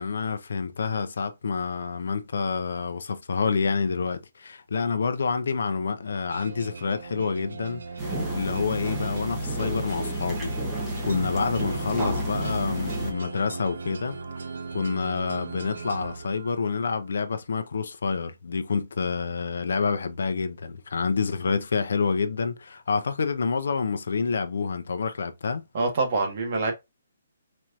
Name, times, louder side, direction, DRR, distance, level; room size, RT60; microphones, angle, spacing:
voice 1, 0.0-7.8 8.3-10.5 11.0-14.2 14.7-25.7, left 5 dB, 70° left, 0.7 m, -28 dB
sound 1, 6.3-17.0, right 4 dB, 80° right, 0.9 m, -38 dB
sound 2, 8.0-13.1, right 1 dB, 10° right, 1.0 m, -31 dB
voice 2, 25.7-26.7, right 3 dB, 35° right, 1.3 m, -25 dB
4.3 x 3.0 x 2.5 m
hypercardioid pair, 170°, 0 cm